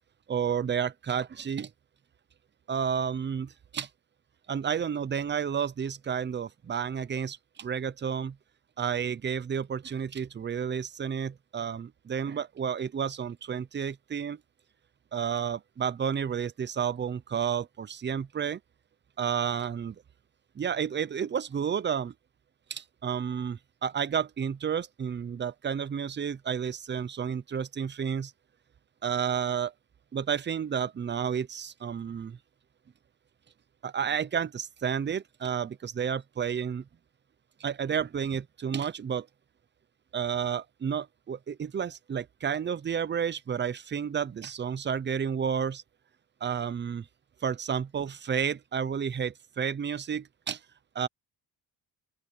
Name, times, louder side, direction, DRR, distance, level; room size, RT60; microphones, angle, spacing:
voice 1, 0.3-1.7 2.7-3.9 4.5-8.4 8.8-14.4 15.1-18.6 19.2-20.0 20.6-22.1 22.7-28.3 29.0-29.7 30.1-32.4 33.8-36.9 37.6-39.3 40.1-45.8 46.4-47.1 47.4-50.6 50.9-51.1, right 7 dB, 30° right, 0.6 m, -31 dB
open air
cardioid pair, 150°, 39 cm